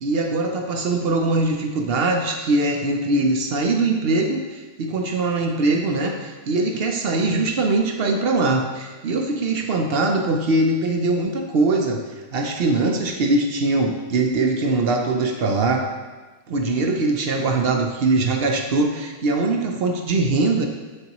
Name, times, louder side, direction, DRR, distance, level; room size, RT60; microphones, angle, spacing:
voice 1, 0.0-15.9 16.5-20.7, right 2 dB, 60° right, 3 dB, 0.6 m, -22 dB
8.2 x 6.5 x 3.0 m, 1.3 s
omnidirectional pair, 1.7 m